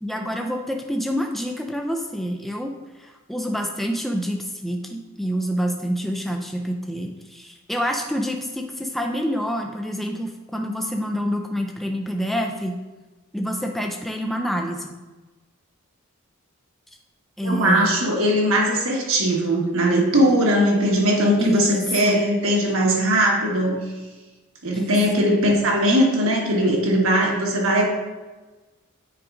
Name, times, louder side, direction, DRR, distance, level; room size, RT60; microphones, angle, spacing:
voice 1, 0.0-12.8 13.3-15.0 17.4-18.0 21.4-22.2 24.7-25.3, equal, ahead, 2 dB, 0.3 m, -27 dB
voice 2, 17.4-23.8 24.6-27.9, equal, 65° right, -1 dB, 1.4 m, -20 dB
8.5 x 5.1 x 2.5 m, 1.2 s
head